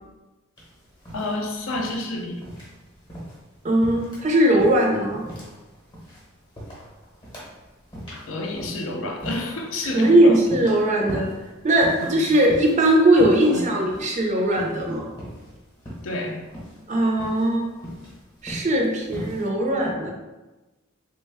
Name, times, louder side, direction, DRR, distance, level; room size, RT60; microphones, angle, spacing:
sound 1, 0.6-19.5, equal, 25° left, 0.8 m, -40 dB
voice 1, 1.1-2.4 8.1-10.4 12.0-12.2 13.5-13.8 16.0-16.4, left 2 dB, 70° left, 1 dB, 0.5 m, -30 dB
voice 2, 3.6-5.2 9.8-11.3 11.6-15.1 16.9-17.7 18.4-20.1, right 1 dB, 35° right, 0 dB, 0.5 m, -19 dB
3.3 x 2.1 x 3.4 m, 1.1 s
head